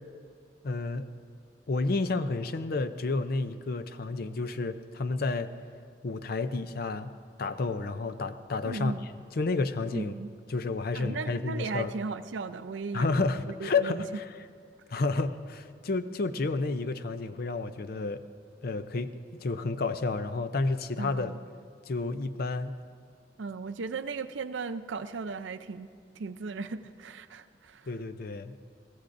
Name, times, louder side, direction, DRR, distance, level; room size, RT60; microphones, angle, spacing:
voice 1, 0.6-1.1 1.7-5.5 6.0-7.1 7.4-8.9 9.4-10.1 10.5-11.9 12.9-14.2 14.9-18.2 18.6-21.3 21.9-22.7 27.9-28.6, left 3 dB, 55° left, 11 dB, 0.5 m, -30 dB
voice 2, 8.6-9.1 9.9-10.3 10.9-13.2 13.6-14.0 21.0-21.4 23.4-25.9 26.2-27.9, right 4 dB, 75° right, 11 dB, 0.5 m, -36 dB
22.0 x 15.5 x 2.6 m, 2.2 s
head